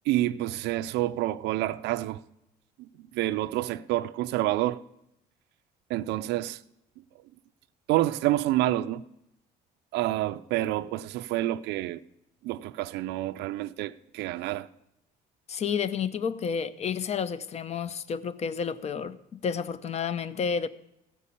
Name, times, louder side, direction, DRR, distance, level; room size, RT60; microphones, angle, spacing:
voice 1, 0.1-2.2 2.8-4.8 5.9-6.6 7.9-9.0 9.9-12.0 12.4-14.7, right 15 dB, 85° right, 0.4 m, -28 dB
voice 2, 15.5-20.7, left 6 dB, 40° left, 0.6 m, -30 dB
15.5 x 5.4 x 8.4 m
cardioid pair, 110°, 17 cm